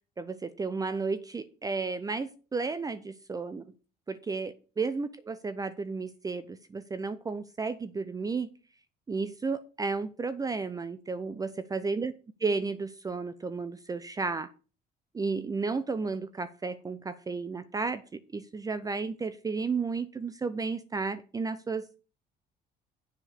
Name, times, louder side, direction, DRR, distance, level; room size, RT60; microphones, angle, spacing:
voice 1, 0.2-3.6 4.1-8.5 9.1-12.1 12.4-14.5 15.1-22.0, right 4 dB, 20° right, 13 dB, 0.5 m, -33 dB
7.2 x 5.1 x 6.6 m, 0.36 s
cardioid pair, 110°, 17 cm